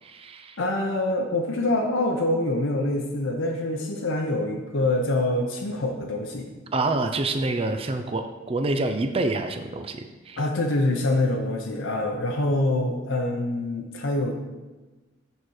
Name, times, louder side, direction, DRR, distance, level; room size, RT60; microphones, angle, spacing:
voice 1, 0.0-0.6 6.7-10.4, right 2 dB, 30° right, 7 dB, 0.4 m, -27 dB
voice 2, 0.6-6.5 10.4-14.3, left 2 dB, 70° left, 1 dB, 0.8 m, -25 dB
6.9 x 4.3 x 6.3 m, 1.2 s
head